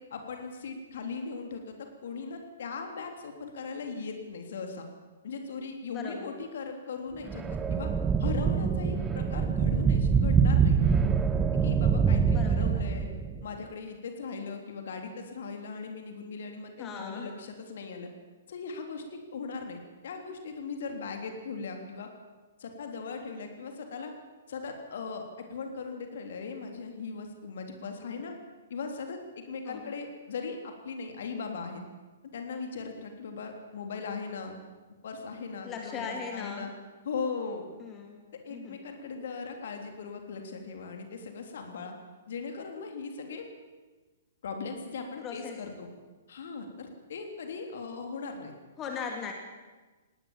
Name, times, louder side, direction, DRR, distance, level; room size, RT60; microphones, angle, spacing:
voice 1, 0.1-4.9 5.2-7.9 8.2-11.1 11.6-13.1 13.4-18.1 18.5-22.1 22.6-24.1 24.5-28.4 28.7-31.8 32.3-34.5 35.0-36.7 37.1-37.8 38.4-41.9 42.3-43.5 44.4-45.9 46.3-48.5, left 4 dB, 55° left, 4 dB, 3.4 m, -39 dB
voice 2, 5.9-6.3 12.3-12.9 16.8-17.3 29.6-29.9 35.6-36.7 37.8-38.8 45.2-45.6 48.8-49.3, left 6 dB, 20° left, 3 dB, 2.4 m, -39 dB
sound 1, 7.3-13.4, right 6 dB, 15° right, 1.0 m, -25 dB
19.0 x 18.5 x 7.3 m, 1.3 s
figure-of-eight pair, 115°, 0 cm